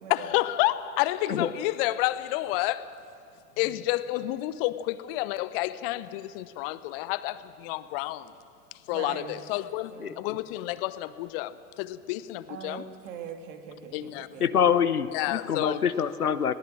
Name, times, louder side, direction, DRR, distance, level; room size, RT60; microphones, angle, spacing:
voice 1, 0.1-2.9 3.6-8.3 8.9-12.8 13.9-14.3 15.1-15.8, left 16 dB, 40° left, 15 dB, 0.8 m, -30 dB
voice 2, 8.9-9.4 9.9-10.2 12.5-14.5, right 7 dB, 55° right, 5 dB, 2.6 m, -41 dB
voice 3, 14.4-16.5, left 8 dB, 80° left, 14 dB, 0.9 m, -25 dB
21.5 x 18.5 x 7.6 m, 2.3 s
figure-of-eight pair, 90°, 44 cm